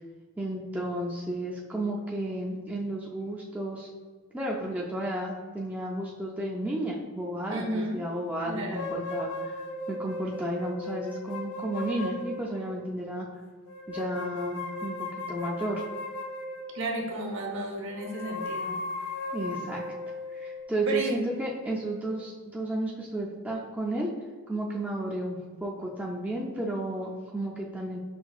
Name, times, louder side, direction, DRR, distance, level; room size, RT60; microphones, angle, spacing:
voice 1, 0.4-3.9 4.3-13.3 13.9-15.8 19.3-19.8 20.3-24.1 24.5-28.0, right 1 dB, 5° right, -3 dB, 0.4 m, -33 dB
voice 2, 7.5-8.0 8.4-8.9 16.7-18.8 20.9-21.2, right 1 dB, 60° right, 1 dB, 0.7 m, -32 dB
sound 1, 8.7-12.9 13.7-17.1 17.9-22.3, left 2 dB, 80° left, 0.4 m, -37 dB
6.0 x 2.7 x 2.4 m, 1.5 s
head